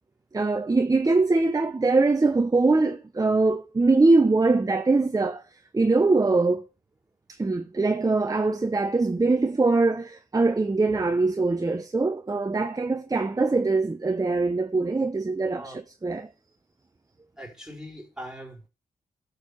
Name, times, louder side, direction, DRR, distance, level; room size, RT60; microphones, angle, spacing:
voice 1, 0.3-5.4 5.7-6.6 7.3-15.7 16.0-16.3, right 3 dB, 25° right, 1.0 m, -22 dB
voice 2, 17.4-18.7, equal, 5° right, 4.8 m, -41 dB
11.5 x 6.8 x 6.8 m
cardioid pair, 80°, 15 cm